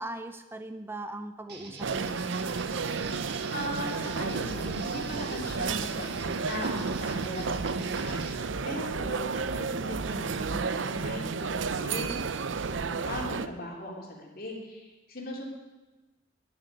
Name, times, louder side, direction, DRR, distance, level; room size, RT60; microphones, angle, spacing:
voice 1, 0.0-2.4, right 1 dB, 15° right, 9 dB, 0.5 m, -39 dB
sound 1, 1.5-8.3, right 3 dB, 60° right, 1.8 m, -44 dB
sound 2, 1.8-13.5, right 4 dB, 85° right, 0.7 m, -32 dB
voice 2, 2.8-3.2 3.5-12.2 12.7-15.4, left 1 dB, 55° left, 0 dB, 3.2 m, -39 dB
10.5 x 9.7 x 9.7 m, 1.2 s
head